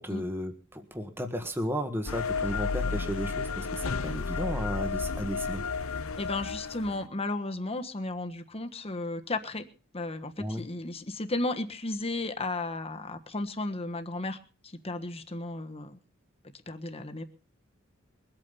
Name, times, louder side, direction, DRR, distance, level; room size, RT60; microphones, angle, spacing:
voice 1, 0.0-5.6 10.4-10.6, equal, 10° right, 7 dB, 1.5 m, -34 dB
sound 1, 2.1-7.1, left 4 dB, 85° left, 0.8 m, -32 dB
voice 2, 6.2-9.6 9.9-14.4 14.8-16.0 16.7-17.2, left 2 dB, 30° left, 7 dB, 1.4 m, -34 dB
22.0 x 8.9 x 5.5 m, 0.38 s
head